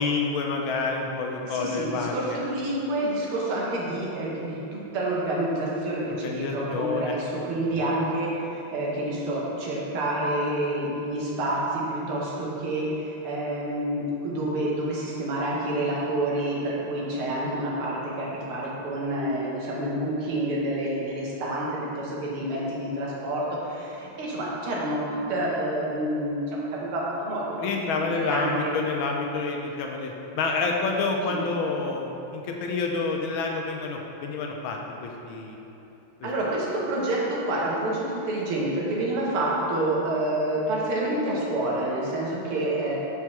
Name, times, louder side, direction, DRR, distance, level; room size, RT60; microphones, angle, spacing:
voice 1, 0.0-2.4 6.1-7.2 7.7-7.8 27.6-35.6 36.2-36.3, left 4 dB, 80° left, 1 dB, 1.4 m, -28 dB
voice 2, 1.4-25.0 25.3-27.7 28.1-28.7 31.3-31.4 36.2-43.0, right 1 dB, 80° right, -4 dB, 2.0 m, -28 dB
4.7 x 4.3 x 5.9 m, 2.9 s
omnidirectional pair, 2.3 m